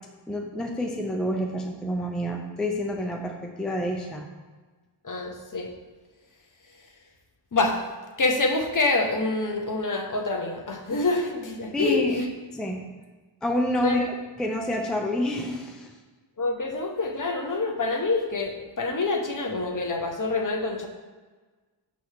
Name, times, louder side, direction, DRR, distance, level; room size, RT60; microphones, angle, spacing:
voice 1, 0.3-4.3 11.7-12.2 12.5-12.8 13.4-14.0 14.4-15.9, left 1 dB, ahead, 1 dB, 0.5 m, -28 dB
voice 2, 5.0-5.7 7.5-7.8 8.2-12.3 13.8-14.1 16.4-20.9, left 3 dB, 40° left, 2 dB, 0.9 m, -26 dB
6.2 x 3.1 x 5.7 m, 1.4 s
wide cardioid pair, 105°, 48 cm